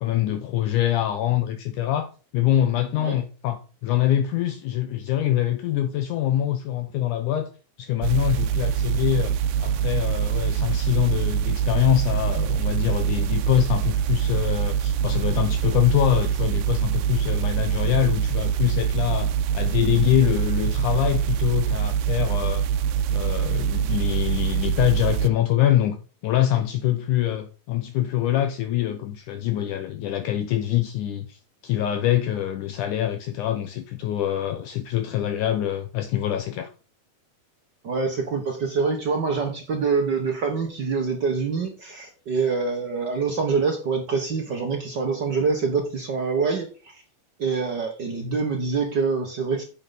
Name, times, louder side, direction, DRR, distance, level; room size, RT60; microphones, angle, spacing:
voice 1, 0.0-2.1 2.3-7.5 7.8-22.7 23.1-26.0 26.2-36.7, left 12 dB, 75° left, 2.1 m, -24 dB
sound 1, 8.0-25.3, right 8 dB, 85° right, 2.2 m, -24 dB
voice 2, 37.8-47.0 47.4-49.6, right 4 dB, 65° right, 1.0 m, -25 dB
9.6 x 6.7 x 3.9 m
omnidirectional pair, 4.0 m